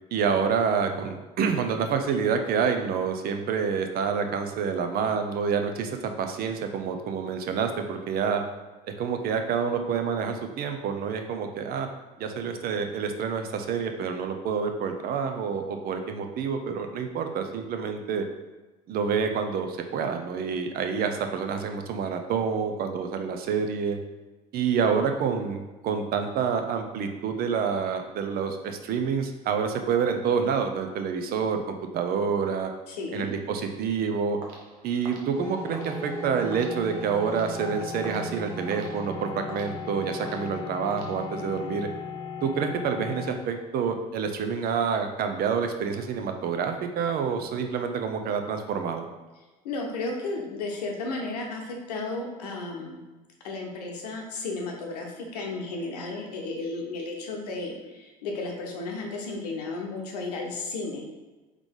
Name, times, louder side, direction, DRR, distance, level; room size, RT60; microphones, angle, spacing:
voice 1, 0.1-8.4 8.9-11.9 12.2-18.2 18.9-24.0 24.5-32.7 33.1-34.4 34.8-41.9 42.4-49.1, right 6 dB, 50° right, 6 dB, 0.6 m, -28 dB
voice 2, 32.9-33.3 49.6-53.0 53.4-61.0, left 3 dB, 85° left, 1 dB, 0.8 m, -33 dB
sound 1, 34.4-41.7, right 2 dB, 75° right, 0.8 m, -48 dB
sound 2, 35.3-43.3, left 3 dB, 15° left, 1.1 m, -36 dB
3.7 x 3.2 x 3.6 m, 1.2 s
hypercardioid pair, 70°, 20 cm